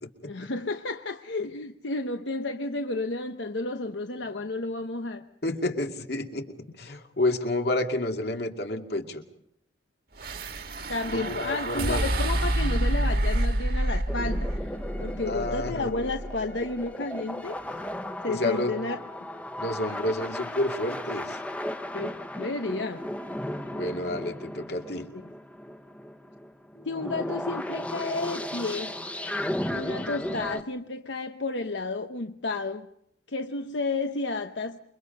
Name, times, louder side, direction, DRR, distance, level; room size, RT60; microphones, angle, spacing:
voice 1, 0.2-5.3 10.9-17.7 18.2-19.3 21.9-23.1 25.1-25.2 26.9-28.9 29.7-32.9 33.3-34.8, left 3 dB, 80° left, 1.0 m, -32 dB
voice 2, 5.4-9.2 11.1-12.0 15.3-15.9 18.3-18.8 19.6-21.4 23.7-25.1, left 2 dB, 60° left, 2.5 m, -30 dB
sound 1, 10.2-16.5, right 1 dB, 55° right, 1.6 m, -28 dB
sound 2, 14.1-30.6, left 1 dB, 5° left, 1.0 m, -35 dB
28.5 x 24.0 x 5.4 m
head